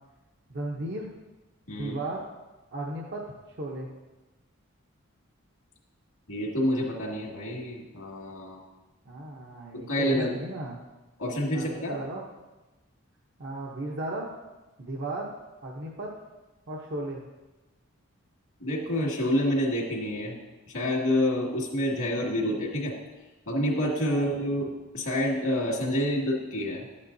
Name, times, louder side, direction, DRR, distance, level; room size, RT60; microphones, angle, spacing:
voice 1, 0.5-1.1 1.7-2.3 2.7-3.9 9.0-10.8 11.5-12.2 13.4-14.3 14.8-15.3 15.6-16.1 16.7-17.3 24.1-24.3, right 2 dB, 50° right, -2 dB, 0.8 m, -35 dB
voice 2, 6.3-8.6 9.7-10.4 11.2-11.9 18.6-20.4 20.7-22.9 23.5-26.8, equal, 80° left, -2 dB, 2.1 m, -28 dB
12.0 x 8.6 x 2.7 m, 1.1 s
head